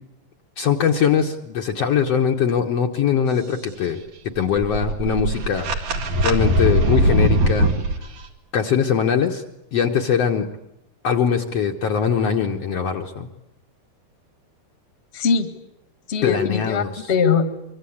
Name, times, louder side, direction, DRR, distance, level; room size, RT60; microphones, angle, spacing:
voice 1, 0.6-4.0 4.4-5.7 6.2-7.7 8.5-9.4 9.7-10.5 11.0-13.3 16.2-17.1, left 7 dB, 60° left, 2 dB, 2.0 m, -21 dB
sound 1, 4.4-7.9, right 1 dB, 70° right, 3.8 m, -20 dB
voice 2, 15.1-15.5 16.1-17.4, left 6 dB, 25° left, 9 dB, 1.5 m, -21 dB
25.0 x 24.5 x 8.7 m, 0.86 s
omnidirectional pair, 3.8 m